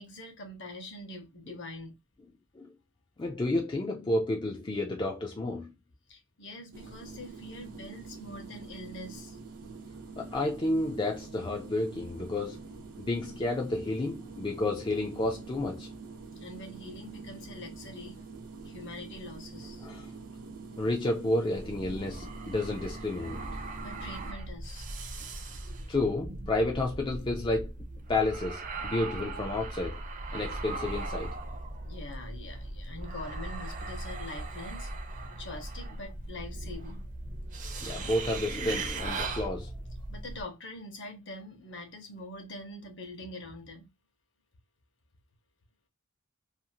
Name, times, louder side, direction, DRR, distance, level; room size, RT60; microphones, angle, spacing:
voice 1, 0.0-2.0 6.1-9.4 16.4-18.2 18.6-19.9 23.8-24.9 31.7-34.9 35.4-37.2 40.1-43.9, left 1 dB, 55° left, 0.8 m, -44 dB
voice 2, 3.2-5.8 10.2-12.6 13.0-15.9 19.8-20.1 20.8-23.6 25.9-27.7 28.1-30.0 30.3-31.4 37.8-39.7, left 2 dB, 20° left, 0.3 m, -31 dB
sound 1, 6.7-24.3, right 4 dB, 85° right, 0.7 m, -46 dB
sound 2, 21.6-40.4, right 2 dB, 35° right, 0.5 m, -39 dB
2.5 x 2.4 x 2.7 m
head